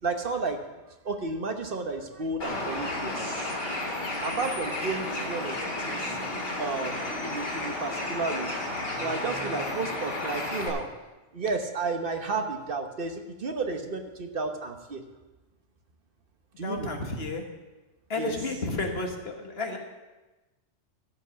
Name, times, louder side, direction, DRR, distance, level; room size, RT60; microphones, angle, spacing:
voice 1, 0.0-0.6 1.0-3.9 4.2-5.5 5.8-6.2 6.6-8.5 8.8-10.9 11.3-15.0 16.6-16.9 18.2-18.4, right 3 dB, 50° right, 5 dB, 1.2 m, -32 dB
Bird, 2.4-10.7, left 2 dB, 90° left, 2.4 m, -32 dB
voice 2, 16.6-17.4 18.1-19.8, left 3 dB, 60° left, 3 dB, 1.6 m, -32 dB
14.0 x 5.4 x 6.9 m, 1.1 s
omnidirectional pair, 1.2 m